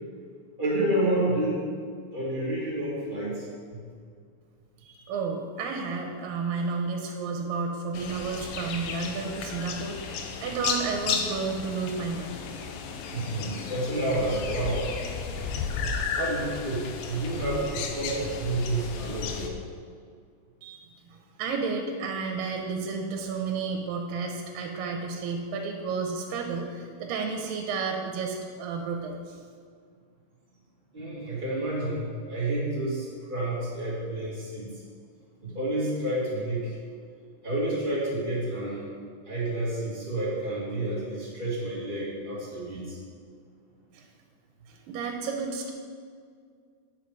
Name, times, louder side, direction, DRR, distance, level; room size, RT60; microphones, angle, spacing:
voice 1, 0.6-1.6 2.1-3.4 3.7-3.8 13.0-14.8 16.2-19.5 30.9-34.7 35.4-36.8 37.4-38.9 39.2-43.0, right 1 dB, 20° right, -7 dB, 1.6 m, -29 dB
voice 2, 4.8-12.4 20.6-29.4 43.9-44.0 44.7-45.7, right 4 dB, 90° right, 3 dB, 2.4 m, -32 dB
sound 1, 7.9-19.5, left 5 dB, 85° left, 2.5 m, -34 dB
9.1 x 5.6 x 4.9 m, 2.1 s
omnidirectional pair, 4.0 m